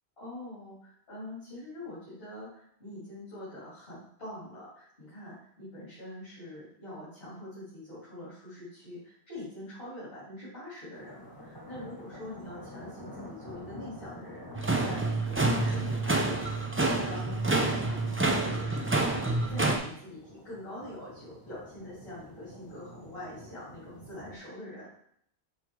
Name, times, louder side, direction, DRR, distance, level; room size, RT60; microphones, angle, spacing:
voice 1, 0.2-24.9, left 1 dB, 65° left, -11 dB, 3.3 m, -44 dB
sound 1, 10.9-24.4, left 1 dB, 20° left, 1.1 m, -48 dB
sound 2, 14.6-19.8, right 2 dB, 20° right, 0.4 m, -28 dB
6.7 x 3.6 x 4.6 m, 0.67 s
omnidirectional pair, 1.1 m